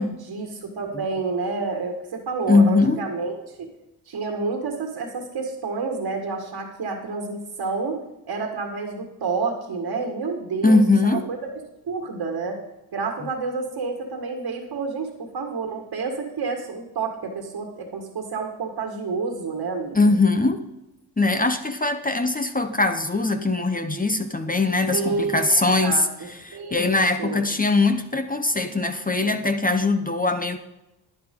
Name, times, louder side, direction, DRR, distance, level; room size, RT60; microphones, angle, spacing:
voice 1, 0.0-3.7 4.1-8.0 8.3-11.5 11.8-12.6 12.9-20.1 24.9-26.9 27.2-27.4, right 4 dB, 60° right, 1 dB, 2.0 m, -29 dB
voice 2, 2.5-3.0 10.6-11.3 19.9-20.6 21.2-26.1 26.4-30.6, left 3 dB, 20° left, 8 dB, 1.0 m, -21 dB
11.0 x 10.5 x 3.8 m, 0.94 s
supercardioid pair, 55°, 45 cm